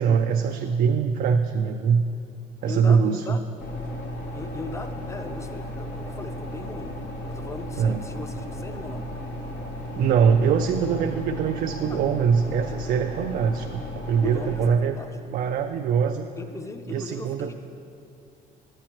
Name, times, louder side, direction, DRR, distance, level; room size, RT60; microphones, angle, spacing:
voice 1, 0.0-2.0 2.6-3.4 7.8-8.0 10.0-15.0 15.3-16.3 16.9-17.5, right 6 dB, 55° right, 5 dB, 0.4 m, -23 dB
voice 2, 2.7-3.4 4.3-6.9 7.3-9.1 11.9-12.1 14.2-15.2 16.4-17.5, left 3 dB, 15° left, 7 dB, 0.5 m, -37 dB
sound 1, 3.6-14.7, equal, 85° left, 1.1 m, -35 dB
10.5 x 8.7 x 3.0 m, 2.5 s
cardioid pair, 110°, 17 cm